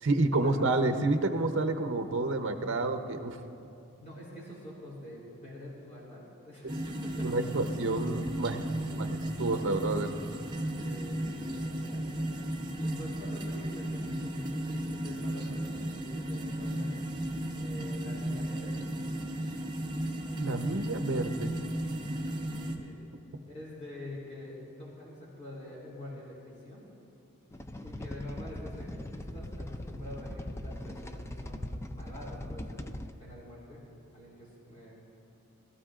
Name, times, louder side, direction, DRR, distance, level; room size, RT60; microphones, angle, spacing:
voice 1, 0.0-3.4 7.2-8.6 9.0-10.2 20.4-21.6, right 2 dB, 60° right, 7 dB, 0.8 m, -29 dB
voice 2, 4.0-7.6 8.8-8.9 10.8-12.3 12.8-17.0 17.6-18.8 22.8-23.0 23.4-26.9 27.8-28.9 29.2-32.9 33.2-33.8 34.1-35.0, left 1 dB, 35° left, -6 dB, 3.3 m, -46 dB
sound 1, 6.7-22.8, right 1 dB, 20° right, 1.0 m, -35 dB
sound 2, 27.5-33.1, left 1 dB, 15° left, 0.4 m, -40 dB
21.0 x 14.0 x 2.5 m, 2.6 s
head